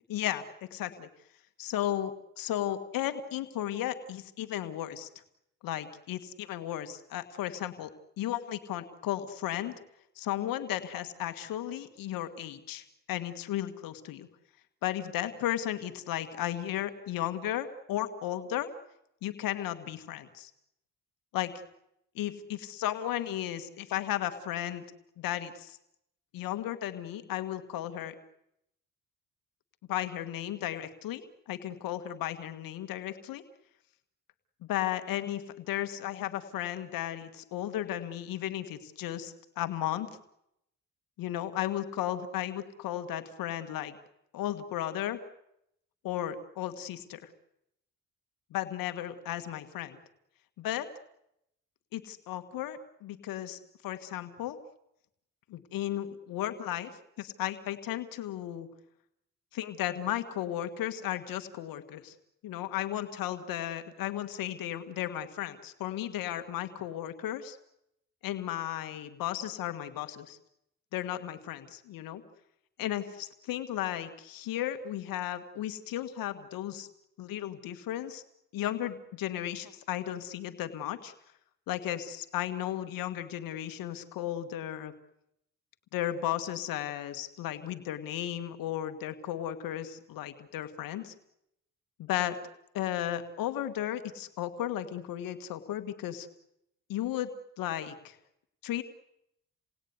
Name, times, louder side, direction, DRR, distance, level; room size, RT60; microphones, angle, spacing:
voice 1, 0.1-1.1 1.6-5.1 5.6-7.9 8.2-9.7 10.2-14.3 14.8-18.7 19.2-20.5 21.3-21.5 22.2-24.8 25.2-25.8 26.3-28.2 29.9-33.4 34.6-40.1 41.2-43.9 44.3-45.2 46.0-47.3 48.5-50.0 50.6-50.9 51.9-54.6 55.5-56.9 57.2-58.7 59.5-62.1 62.4-67.6 68.2-70.4 70.9-72.2 72.8-76.9 77.2-78.2 78.5-81.1 81.7-84.9 85.9-91.1 92.0-92.4 92.7-96.3 96.9-97.3 97.6-98.2 98.6-98.8, left 12 dB, 85° left, 9 dB, 1.9 m, -34 dB
29.0 x 19.0 x 9.7 m, 0.81 s
cardioid pair, 85°, 33 cm